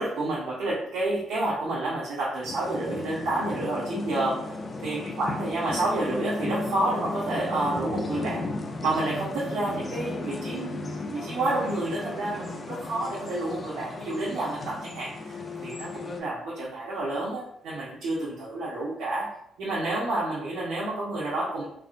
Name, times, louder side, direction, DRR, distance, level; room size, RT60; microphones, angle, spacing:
voice 1, 0.0-4.4 4.8-8.5 8.8-15.3 15.6-19.3 19.6-21.7, right 2 dB, 80° right, -8 dB, 0.9 m, -29 dB
sound 1, 2.4-16.2, left 2 dB, 35° left, 0.5 m, -35 dB
3.5 x 2.5 x 2.5 m, 0.74 s
cardioid pair, 90°, 0 cm